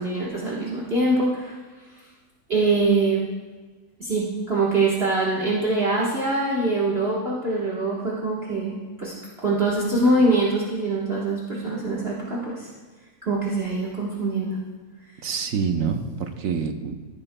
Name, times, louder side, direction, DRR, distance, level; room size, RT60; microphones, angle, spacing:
voice 1, 0.0-1.6 2.5-3.2 4.0-9.1 9.4-12.7 13.3-14.6, right 2 dB, 40° right, -5 dB, 1.5 m, -23 dB
voice 2, 15.2-17.0, right 6 dB, 65° right, 6 dB, 1.1 m, -26 dB
15.0 x 8.8 x 2.2 m, 1.3 s
omnidirectional pair, 1.7 m